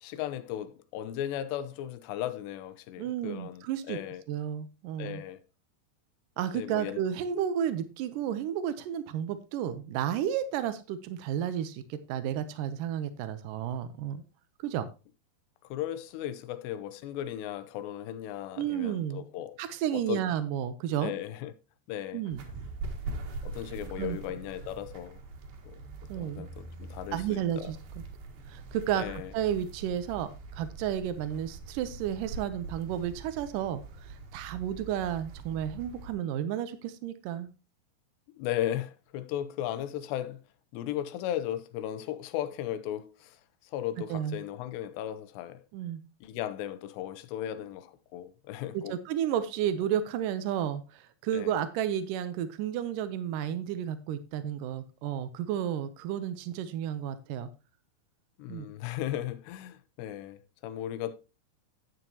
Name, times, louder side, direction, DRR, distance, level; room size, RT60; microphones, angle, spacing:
voice 1, 0.0-4.2 5.0-5.4 6.5-7.0 15.7-19.6 19.9-20.3 21.0-21.5 21.9-22.2 23.4-25.2 25.7-25.8 26.1-27.7 29.0-29.3 38.4-40.4 40.7-43.4 43.7-45.6 46.2-49.0 51.3-51.5 58.4-61.2, left 12 dB, 85° left, 2.9 m, -36 dB
voice 2, 3.0-4.0 4.3-5.2 6.4-14.2 14.6-14.9 18.6-19.2 19.6-21.1 22.1-22.4 24.0-24.2 26.1-26.5 27.1-27.8 28.5-37.5 44.1-44.4 45.7-46.0 48.7-57.5 58.5-58.7, right 10 dB, 90° right, 1.9 m, -32 dB
sound 1, 22.3-36.1, right 3 dB, 65° right, 3.3 m, -43 dB
11.0 x 9.1 x 2.9 m
omnidirectional pair, 4.8 m